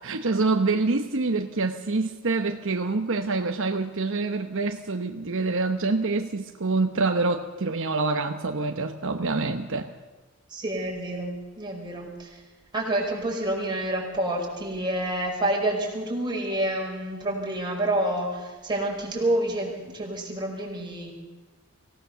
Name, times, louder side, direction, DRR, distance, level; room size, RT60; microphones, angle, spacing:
voice 1, 0.0-9.9, right 3 dB, 65° right, 6 dB, 1.0 m, -26 dB
voice 2, 10.5-12.4 12.7-21.1, right 1 dB, 20° right, -1 dB, 5.2 m, -28 dB
24.5 x 17.0 x 6.9 m, 1.2 s
head